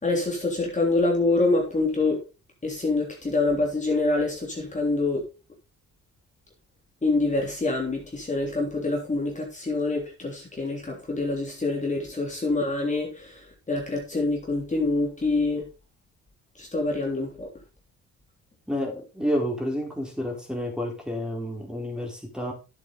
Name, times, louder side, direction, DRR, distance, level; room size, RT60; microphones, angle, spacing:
voice 1, 0.0-2.2 2.6-5.2 7.0-15.6 16.6-17.5, left 2 dB, 25° left, 3.4 m, -26 dB
voice 2, 18.7-22.5, equal, 5° right, 4.0 m, -30 dB
10.0 x 8.2 x 3.9 m
cardioid pair, 90°, 30 cm